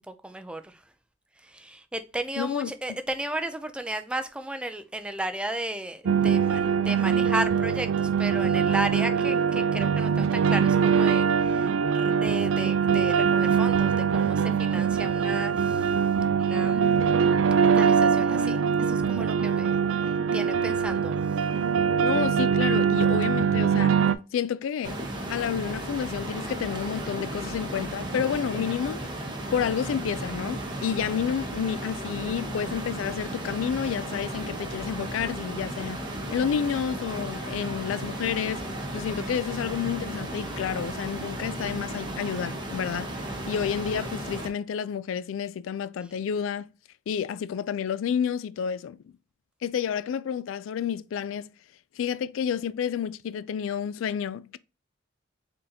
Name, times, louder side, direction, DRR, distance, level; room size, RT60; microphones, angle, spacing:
voice 1, 0.1-0.8 1.4-15.9 16.4-16.8 17.6-18.6 18.9-19.8 20.3-21.1, right 1 dB, 5° right, 0.4 m, -34 dB
voice 2, 2.4-3.0 22.0-24.0 24.3-25.0 25.3-29.0 29.5-36.0 36.3-38.6 38.9-43.1 43.5-46.7 47.1-49.1 49.6-51.5 52.0-54.6, left 7 dB, 80° left, 0.3 m, -30 dB
sound 1, 6.1-24.2, right 6 dB, 80° right, 0.4 m, -23 dB
sound 2, 24.8-44.5, right 1 dB, 25° right, 1.0 m, -35 dB
4.0 x 3.8 x 2.7 m
head